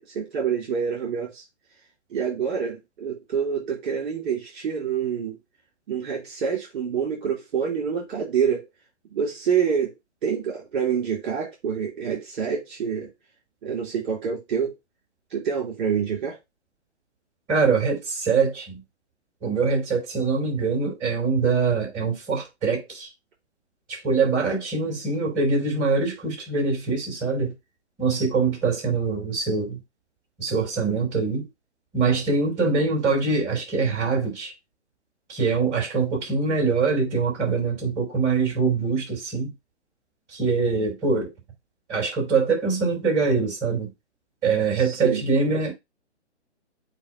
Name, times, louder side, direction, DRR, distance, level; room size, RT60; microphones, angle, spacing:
voice 1, 0.0-1.4 2.1-5.4 5.9-8.7 9.1-9.9 10.2-13.1 13.6-14.7 15.3-16.4 44.7-45.2, right 7 dB, 45° right, 4.1 m, -27 dB
voice 2, 17.5-18.8 19.4-23.1 23.9-27.5 28.0-29.8 30.4-31.4 31.9-34.5 35.3-39.5 40.3-41.3 41.9-43.9 44.4-45.7, right 4 dB, 20° right, 4.7 m, -23 dB
8.4 x 2.8 x 5.1 m
figure-of-eight pair, 130°, 35 cm